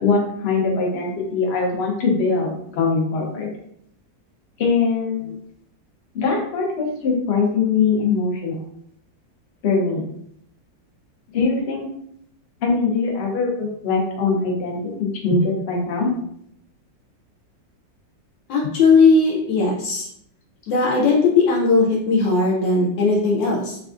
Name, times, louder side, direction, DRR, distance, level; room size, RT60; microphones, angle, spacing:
voice 1, 0.0-3.5 4.6-5.3 6.1-8.6 9.6-10.1 11.3-11.9 12.6-16.1, left 4 dB, 60° left, -1 dB, 0.6 m, -22 dB
voice 2, 18.5-20.1 20.7-23.8, left 4 dB, 85° left, -2 dB, 1.3 m, -18 dB
3.3 x 2.4 x 2.4 m, 0.71 s
omnidirectional pair, 2.0 m